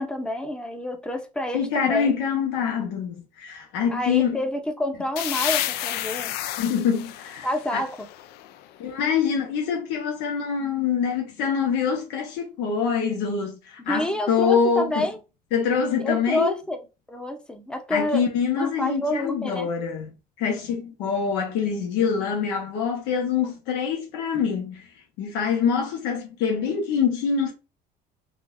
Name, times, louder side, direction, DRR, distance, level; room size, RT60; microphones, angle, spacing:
voice 1, 0.0-2.1 3.9-6.4 7.4-8.1 13.9-15.2 16.0-16.8 17.1-18.3 18.5-19.7, left 1 dB, 5° left, 0.6 m, -28 dB
voice 2, 1.5-4.4 6.6-7.8 8.8-15.1 15.5-16.5 17.9-20.1 20.4-24.8 25.2-27.5, left 6 dB, 90° left, 1.1 m, -25 dB
sound 1, 5.2-8.8, left 13 dB, 70° left, 0.4 m, -31 dB
3.8 x 2.5 x 2.5 m
cardioid pair, 135°, 17 cm